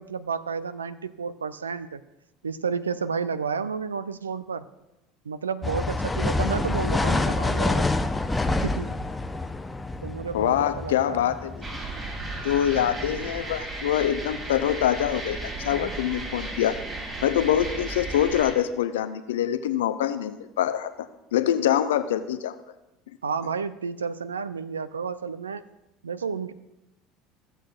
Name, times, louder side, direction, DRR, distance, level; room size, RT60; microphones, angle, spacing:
voice 1, 0.0-2.0 2.4-4.7 5.2-7.9 8.5-9.0 10.0-11.3 23.2-25.6 26.0-26.5, right 5 dB, 80° right, 14 dB, 0.4 m, -31 dB
sound 1, 5.6-13.6, left 2 dB, 15° left, 0.6 m, -28 dB
voice 2, 10.3-11.6 12.4-16.8 17.2-20.9 21.3-22.6, left 10 dB, 70° left, 11 dB, 0.6 m, -25 dB
sound 2, 11.6-18.5, right 2 dB, 25° right, 3.0 m, -35 dB
15.0 x 7.8 x 2.4 m, 0.96 s
figure-of-eight pair, 65°, 0 cm